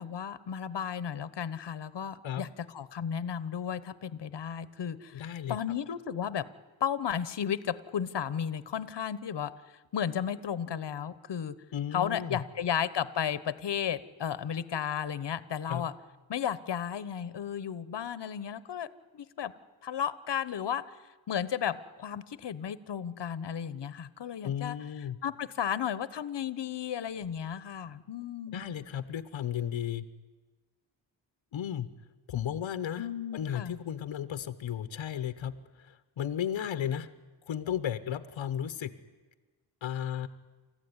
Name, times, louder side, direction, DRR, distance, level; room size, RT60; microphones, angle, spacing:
voice 1, 0.0-6.4 6.8-9.5 9.9-11.5 11.9-15.9 16.3-18.9 19.1-19.5 19.8-20.8 21.3-24.8 25.2-28.7 33.0-33.7, left 8 dB, 65° left, 16 dB, 1.1 m, -34 dB
voice 2, 5.1-5.6 11.7-12.4 15.7-15.8 24.4-25.2 28.5-30.0 31.5-31.9 32.3-33.1 33.3-35.5 35.8-37.1 37.5-38.9 39.8-40.3, left 9 dB, 90° left, 12 dB, 1.0 m, -34 dB
29.0 x 14.0 x 9.8 m, 1.3 s
cardioid pair, 75°, 45 cm